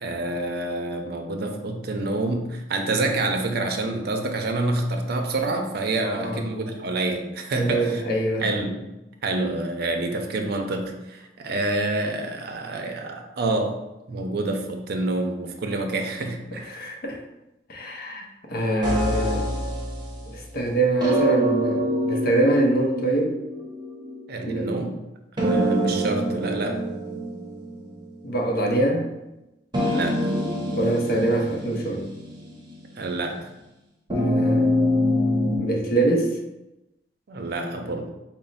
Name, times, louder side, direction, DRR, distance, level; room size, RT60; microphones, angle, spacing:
voice 1, 0.0-8.0 8.4-8.9 9.2-13.8 14.1-16.9 24.3-24.9 25.4-26.9 29.9-30.3 33.0-33.5 37.3-38.1, right 2 dB, 60° right, 4 dB, 0.5 m, -27 dB
voice 2, 7.5-8.5 14.3-14.4 16.7-17.2 17.7-19.5 20.3-23.3 24.4-24.7 28.2-29.0 30.7-32.1 34.1-34.8 35.5-36.4, right 2 dB, 55° left, 1 dB, 0.6 m, -24 dB
sound 1, 18.8-20.4 21.0-24.3 25.4-28.2 28.5-28.6 29.7-32.9 34.1-35.6, equal, 25° right, 0.7 m, -25 dB
4.1 x 2.0 x 4.0 m, 0.97 s
head